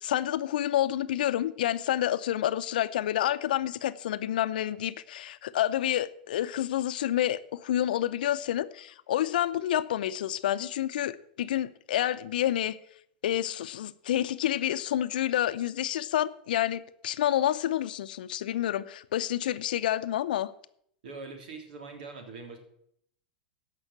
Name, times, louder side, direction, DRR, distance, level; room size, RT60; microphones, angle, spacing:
voice 1, 0.0-12.8 13.2-20.5, left 12 dB, 75° left, 0.7 m, -29 dB
voice 2, 21.0-22.6, right 4 dB, 75° right, 3.2 m, -42 dB
14.5 x 5.7 x 7.4 m
hypercardioid pair, 110°, 5 cm